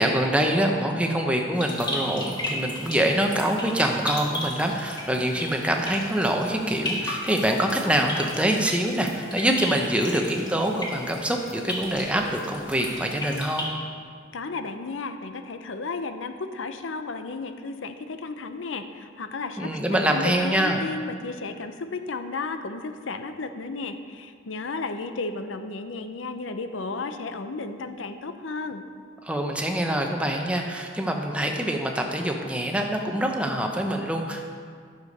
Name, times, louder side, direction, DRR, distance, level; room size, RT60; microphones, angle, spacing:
voice 1, 0.0-13.7 19.6-20.9 29.2-34.4, right 1 dB, 5° right, 2 dB, 0.8 m, -25 dB
sound 1, 1.5-13.6, left 1 dB, 25° left, 1.7 m, -35 dB
voice 2, 14.3-28.8, left 3 dB, 80° left, 9 dB, 0.6 m, -33 dB
11.5 x 6.8 x 5.4 m, 2.1 s
head